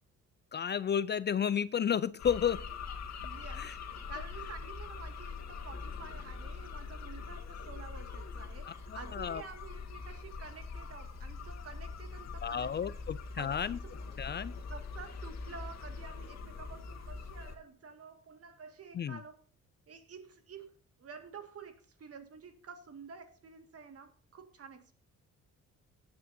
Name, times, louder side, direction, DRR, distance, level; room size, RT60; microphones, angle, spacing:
voice 1, 0.5-2.6 3.5-3.8 8.7-9.4 12.4-13.8 14.2-14.5 18.9-19.2, left 8 dB, 35° left, 17 dB, 0.4 m, -32 dB
sound 1, 2.2-17.5, left 4 dB, 60° left, 2.2 m, -43 dB
voice 2, 3.2-12.9 13.4-13.8 14.7-19.4 19.9-20.7 21.0-24.9, right 5 dB, 50° right, 6 dB, 2.0 m, -50 dB
17.0 x 8.8 x 2.7 m, 0.42 s
cardioid pair, 90°, 30 cm